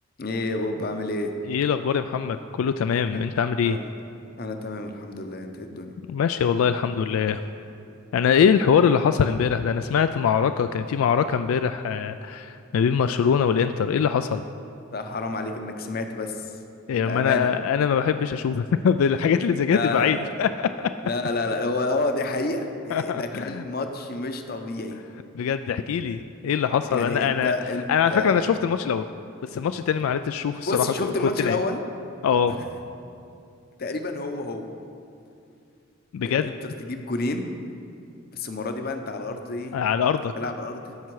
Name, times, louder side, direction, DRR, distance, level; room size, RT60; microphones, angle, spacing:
voice 1, 0.2-1.3 3.6-3.9 4.4-5.9 14.9-16.4 17.0-17.5 19.7-20.3 21.0-25.0 26.9-27.8 28.1-28.5 30.7-31.8 32.5-32.6 33.8-34.7 36.2-36.5 36.8-37.5 38.3-39.8 40.4-41.0, left 2 dB, 50° left, 6 dB, 0.7 m, -29 dB
voice 2, 1.4-3.8 6.1-7.4 8.1-14.4 16.9-20.9 22.9-23.6 25.3-27.5 27.9-29.1 29.4-31.6 32.2-32.6 36.1-36.5 39.7-40.3, left 7 dB, 85° left, 10 dB, 0.3 m, -23 dB
15.0 x 5.6 x 4.7 m, 2.5 s
head